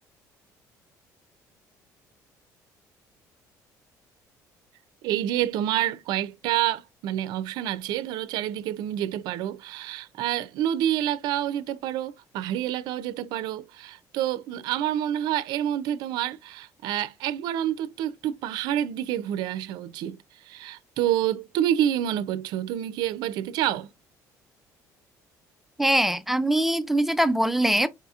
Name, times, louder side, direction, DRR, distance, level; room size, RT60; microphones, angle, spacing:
voice 1, 5.0-20.2 20.4-23.9, right 11 dB, 75° right, 0.4 m, -28 dB
voice 2, 25.8-27.9, right 1 dB, 5° right, 0.3 m, -22 dB
4.8 x 2.8 x 2.3 m
cardioid pair, 140°, 7 cm